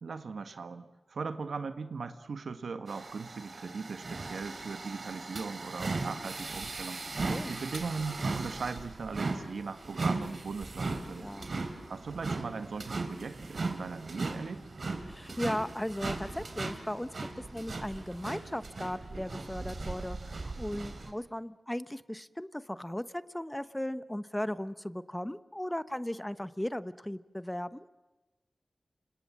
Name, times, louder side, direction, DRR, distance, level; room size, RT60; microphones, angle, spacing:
voice 1, 0.0-11.3 11.9-14.6, right 4 dB, 90° right, 9 dB, 1.6 m, -39 dB
sound 1, 2.9-21.1, right 3 dB, 60° right, 3.2 m, -38 dB
voice 2, 7.1-7.6 11.2-11.5 15.1-17.1 17.4-27.8, left 1 dB, 10° left, 13 dB, 1.0 m, -37 dB
29.0 x 26.5 x 7.6 m, 1.2 s
wide cardioid pair, 65°, 0 cm